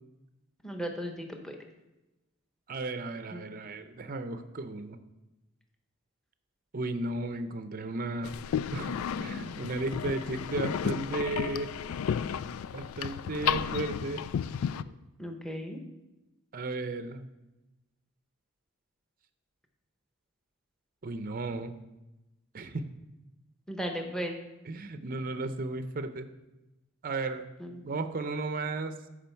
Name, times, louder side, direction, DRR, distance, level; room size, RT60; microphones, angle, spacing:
voice 1, 0.6-1.6 3.3-3.4 15.2-15.8 23.7-24.4 27.6-27.8, equal, 5° left, 3 dB, 0.9 m, -36 dB
voice 2, 2.7-5.0 6.7-8.3 8.7-8.9 9.2-11.7 12.7-14.2 14.8-14.9 16.5-17.3 21.0-21.7 22.5-22.9 24.7-26.3 27.0-27.4 27.8-29.0, right 2 dB, 40° right, 9 dB, 0.6 m, -34 dB
sound 1, 8.2-14.8, left 8 dB, 75° left, 0.3 m, -33 dB
13.5 x 5.0 x 4.5 m, 1.0 s
head